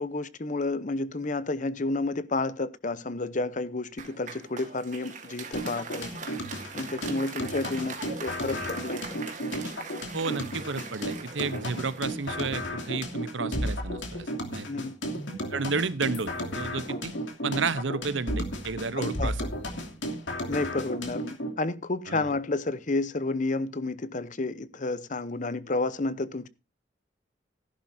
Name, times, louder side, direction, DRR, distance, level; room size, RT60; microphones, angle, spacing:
voice 1, 0.0-6.1 6.7-9.0 14.7-14.9 18.9-19.5 20.5-26.5, left 2 dB, 40° left, 0.8 m, -31 dB
Applause, 4.0-13.3, right 5 dB, 40° right, 2.1 m, -42 dB
sound 1, 5.5-21.5, equal, 70° left, 2.9 m, -34 dB
voice 2, 10.1-14.9 15.5-17.1 17.4-19.3 22.1-22.2, right 4 dB, 75° right, 0.9 m, -32 dB
14.5 x 11.5 x 2.7 m
head